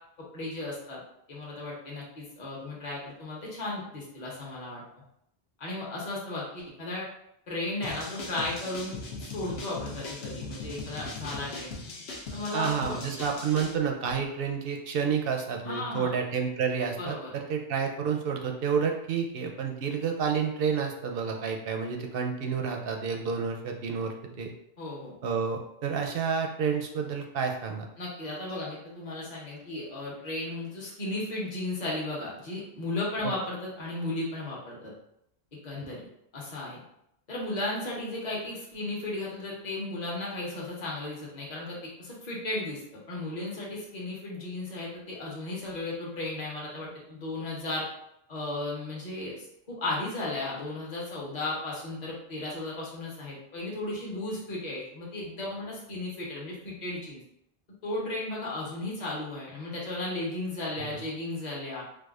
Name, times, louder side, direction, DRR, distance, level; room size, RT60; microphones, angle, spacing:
voice 1, 0.3-1.0 1.3-4.8 5.6-7.1 7.5-11.7 12.3-13.0 15.6-16.1 17.0-17.3 24.8-25.1 28.0-34.9 35.6-36.1 36.3-36.8 37.3-47.9 48.3-57.2 57.8-61.8, left 2 dB, 45° left, -5 dB, 1.0 m, -35 dB
sound 1, 7.8-13.7, left 3 dB, 90° left, 0.9 m, -39 dB
voice 2, 12.5-24.5 25.2-27.8 60.8-60.9, right 6 dB, 70° right, 3 dB, 0.7 m, -30 dB
4.7 x 2.2 x 2.3 m, 0.76 s
omnidirectional pair, 1.0 m